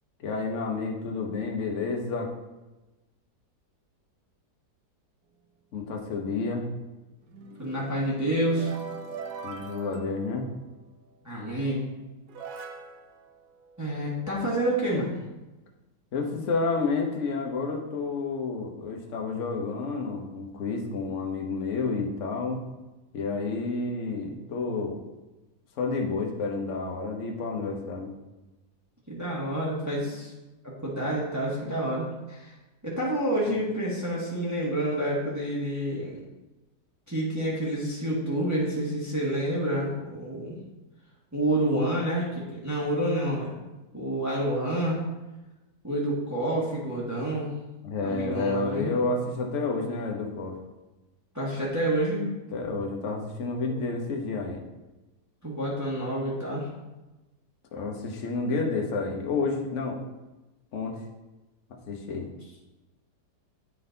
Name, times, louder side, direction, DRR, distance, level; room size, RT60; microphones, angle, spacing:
voice 1, 0.2-2.3 5.7-6.6 9.4-10.5 16.1-22.6 23.1-25.0 25.8-28.1 47.8-50.6 52.5-54.6 57.7-60.0 60.7-61.0 61.9-62.3, left 4 dB, 50° left, 1 dB, 1.2 m, -30 dB
sound 1, 7.2-10.9 11.7-11.8 12.3-14.2, right 4 dB, 70° right, 1.3 m, -42 dB
voice 2, 7.6-8.7 11.2-11.8 13.8-15.1 29.1-30.3 30.8-32.5 32.8-36.2 37.1-40.6 41.3-43.5 43.9-45.0 45.8-47.5 48.0-48.9 51.3-52.3 53.6-53.8 55.4-56.7, right 1 dB, 10° right, -6 dB, 1.3 m, -28 dB
9.5 x 3.9 x 3.9 m, 1.1 s
omnidirectional pair, 1.9 m